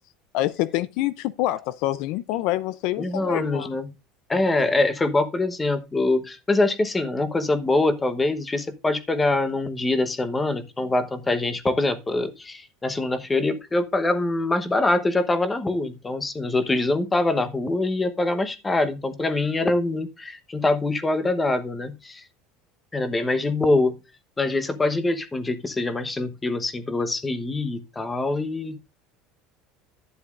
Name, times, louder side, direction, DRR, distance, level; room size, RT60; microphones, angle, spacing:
voice 1, 0.3-3.7, left 15 dB, 55° left, 0.4 m, -26 dB
voice 2, 3.0-3.9 4.3-22.2 22.9-24.0 24.4-28.8, left 2 dB, 10° left, 1.0 m, -24 dB
11.5 x 9.8 x 2.5 m
cardioid pair, 160°, 0 cm